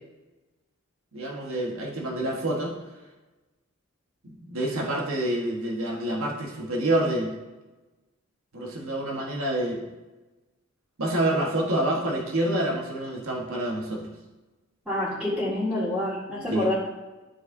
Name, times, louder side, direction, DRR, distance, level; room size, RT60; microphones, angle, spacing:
voice 1, 1.1-2.7 4.2-7.3 8.5-9.9 11.0-14.1 16.5-16.7, right 1 dB, 75° right, -1 dB, 1.4 m, -27 dB
voice 2, 14.9-16.7, left 1 dB, ahead, -13 dB, 2.0 m, -27 dB
12.0 x 4.8 x 2.7 m, 1.1 s
head